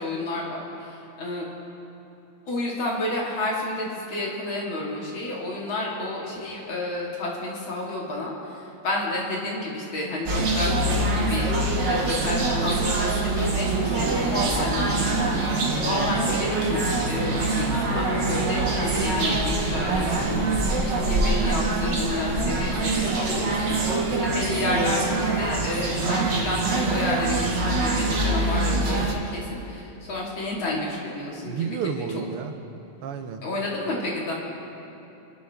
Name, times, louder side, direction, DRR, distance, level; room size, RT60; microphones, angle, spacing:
voice 1, 0.0-1.5 2.5-10.7 11.1-32.2 33.4-34.3, left 2 dB, 65° left, -3 dB, 3.1 m, -31 dB
sound 1, 10.3-29.1, right 2 dB, 55° right, 2.1 m, -24 dB
voice 2, 31.5-32.5 33.0-33.4, right 7 dB, 90° right, 7 dB, 1.8 m, -30 dB
26.5 x 11.0 x 3.6 m, 3.0 s
omnidirectional pair, 2.4 m